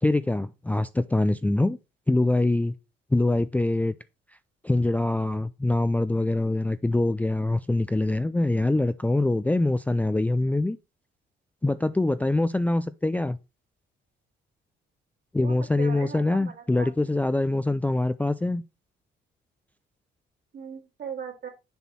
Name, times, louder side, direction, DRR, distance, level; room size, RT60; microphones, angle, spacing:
voice 1, 0.0-1.8 2.1-2.7 3.1-3.9 4.6-10.8 11.6-13.4 15.3-18.6, left 2 dB, 10° left, 0.3 m, -24 dB
voice 2, 15.4-16.9 20.5-21.5, right 7 dB, 60° right, 2.5 m, -39 dB
7.0 x 4.4 x 4.2 m
cardioid pair, 90°, 20 cm